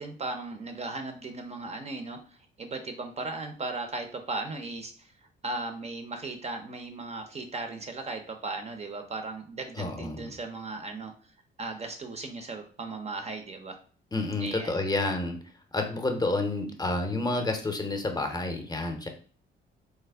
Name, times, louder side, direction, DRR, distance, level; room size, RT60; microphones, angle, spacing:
voice 1, 0.0-5.1 5.4-11.1 11.6-13.8 14.4-14.8, right 3 dB, 35° right, 6 dB, 0.4 m, -37 dB
voice 2, 9.8-10.3 14.1-15.4 15.7-19.1, left 2 dB, 20° left, 4 dB, 0.6 m, -29 dB
3.2 x 2.0 x 3.3 m, 0.41 s
cardioid pair, 90°, 20 cm